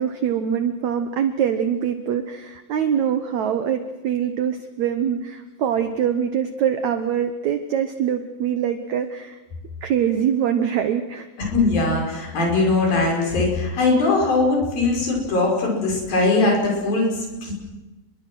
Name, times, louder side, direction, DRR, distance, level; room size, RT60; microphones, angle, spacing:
voice 1, 0.0-9.4 9.8-11.3, right 8 dB, 85° right, 8 dB, 1.6 m, -23 dB
voice 2, 11.4-17.5, left 3 dB, 55° left, 0 dB, 7.6 m, -20 dB
29.5 x 22.5 x 6.3 m, 1.1 s
omnidirectional pair, 4.8 m